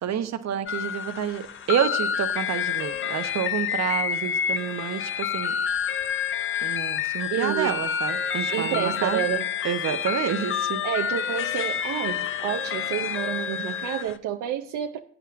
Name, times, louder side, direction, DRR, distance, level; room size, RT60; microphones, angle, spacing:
voice 1, 0.0-5.5 6.6-9.2 9.6-10.8, right 9 dB, 60° right, 0.9 m, -29 dB
sound 1, 0.7-14.2, left 8 dB, 45° left, 0.6 m, -28 dB
voice 2, 7.3-7.8 8.5-9.7 10.8-15.0, right 11 dB, 80° right, 0.6 m, -29 dB
18.5 x 9.0 x 2.5 m
cardioid pair, 90°, 30 cm